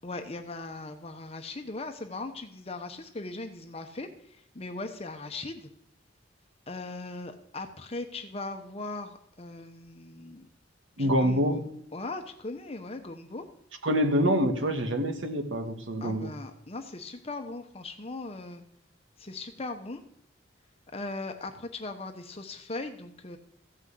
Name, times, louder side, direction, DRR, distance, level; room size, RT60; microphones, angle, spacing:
voice 1, 0.0-5.7 6.7-10.5 11.0-11.6 11.9-13.5 16.0-18.6 19.2-20.0 20.9-23.4, left 2 dB, 30° left, 6 dB, 1.0 m, -39 dB
voice 2, 11.0-11.6 13.8-16.3, equal, 70° right, 6 dB, 1.8 m, -26 dB
15.0 x 6.3 x 8.4 m, 0.72 s
head